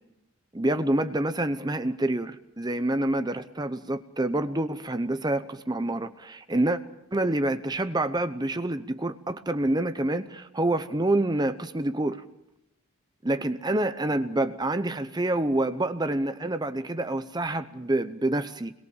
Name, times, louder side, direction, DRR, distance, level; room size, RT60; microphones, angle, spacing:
voice 1, 0.5-6.8 7.1-12.2 13.2-18.7, right 1 dB, 20° right, 10 dB, 0.8 m, -27 dB
28.5 x 22.0 x 7.2 m, 0.88 s
head